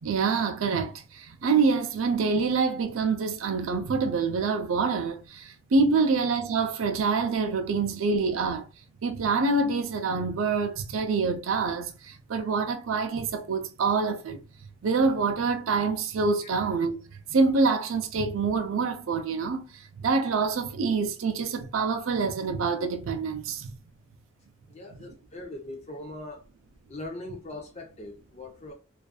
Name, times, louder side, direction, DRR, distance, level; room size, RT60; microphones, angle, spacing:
voice 1, 0.0-8.7 9.0-14.4 14.8-23.8, right 4 dB, 80° right, 0.5 m, -26 dB
voice 2, 24.7-26.4 26.9-28.7, left 2 dB, 30° left, 0.6 m, -40 dB
2.5 x 2.4 x 2.2 m
head